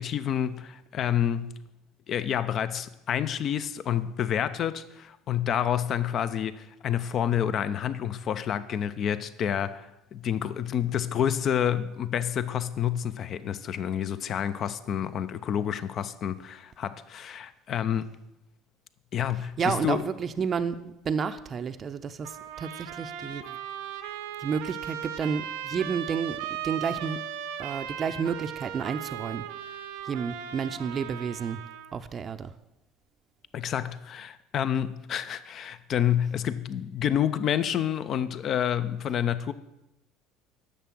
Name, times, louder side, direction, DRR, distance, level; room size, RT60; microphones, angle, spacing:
voice 1, 0.0-1.6 2.1-18.1 19.1-20.0 33.5-39.5, left 9 dB, 45° left, 0.6 m, -29 dB
voice 2, 19.3-23.6 24.4-27.2 27.6-29.4 30.0-31.6 31.9-32.5, right 6 dB, 40° right, 0.6 m, -31 dB
Trumpet, 22.2-31.9, right 9 dB, 70° right, 0.7 m, -37 dB
10.0 x 6.7 x 6.1 m
hypercardioid pair, 65°, 0 cm